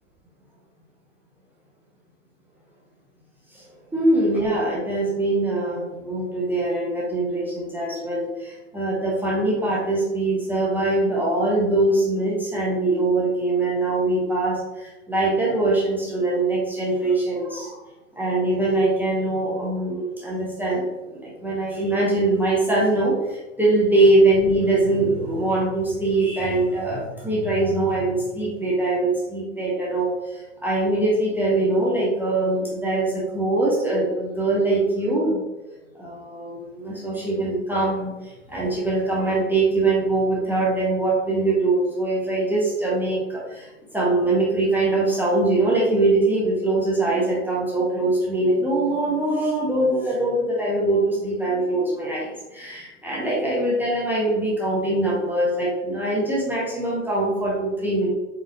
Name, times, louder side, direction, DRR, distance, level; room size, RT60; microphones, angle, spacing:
voice 1, 3.9-17.8 18.2-35.4 36.0-58.1, right 2 dB, 5° right, -6 dB, 0.6 m, -22 dB
4.2 x 2.5 x 2.6 m, 1.1 s
figure-of-eight pair, 95°, 38 cm